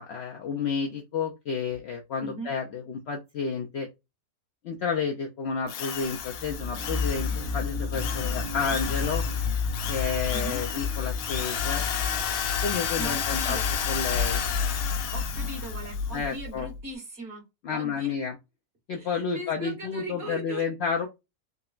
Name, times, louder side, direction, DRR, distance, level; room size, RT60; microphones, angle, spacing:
voice 1, 0.0-3.9 4.6-9.2 9.9-11.8 12.6-13.6 13.9-14.4 16.1-16.7 17.6-18.3 18.9-21.1, left 5 dB, 65° left, 0.6 m, -31 dB
voice 2, 2.2-2.6 10.3-10.7 13.0-13.7 15.1-18.1 18.9-20.7, right 1 dB, 50° right, 1.8 m, -39 dB
Drill, 5.7-16.1, left 8 dB, 90° left, 1.1 m, -33 dB
sound 1, 6.2-16.8, left 5 dB, 90° right, 1.3 m, -31 dB
3.7 x 2.0 x 2.3 m
omnidirectional pair, 1.5 m